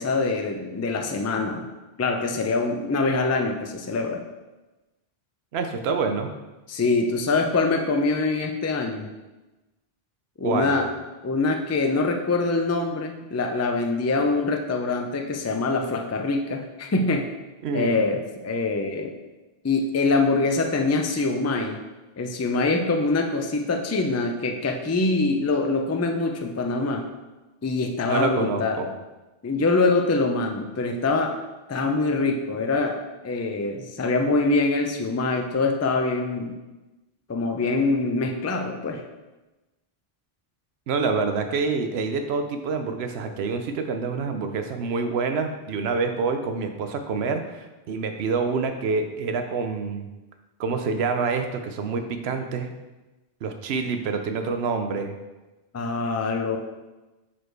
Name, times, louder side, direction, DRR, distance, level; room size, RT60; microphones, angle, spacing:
voice 1, 0.0-1.7 2.0-4.2 6.7-9.1 10.4-10.9 11.2-17.3 17.7-19.1 19.6-21.8 22.2-27.0 27.6-28.8 29.4-31.3 31.7-33.0 33.2-36.6 37.3-39.0 55.7-56.6, left 3 dB, 25° left, 3 dB, 0.3 m, -24 dB
voice 2, 5.5-6.3 10.4-10.8 17.6-18.0 28.1-28.9 40.9-50.1 50.6-52.7 53.4-55.2, right 4 dB, 85° right, 7 dB, 0.9 m, -27 dB
4.8 x 4.4 x 4.6 m, 1.1 s
omnidirectional pair, 1.0 m